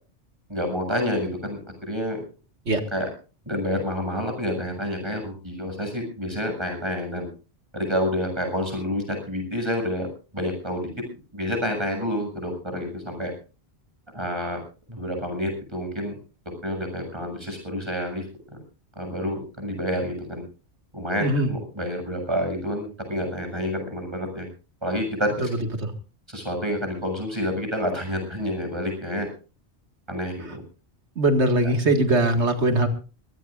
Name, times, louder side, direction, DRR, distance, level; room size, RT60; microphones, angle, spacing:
voice 1, 0.5-2.2 2.9-3.1 3.5-7.3 7.7-10.1 10.3-10.9 11.3-13.3 14.1-14.6 14.9-16.1 16.6-18.2 19.0-20.4 20.9-24.5 24.8-25.5 26.3-29.3 30.1-30.6, equal, 25° right, 4 dB, 7.2 m, -28 dB
voice 2, 31.2-32.9, right 2 dB, 85° right, 6 dB, 2.3 m, -21 dB
23.0 x 18.5 x 2.5 m, 0.35 s
omnidirectional pair, 1.1 m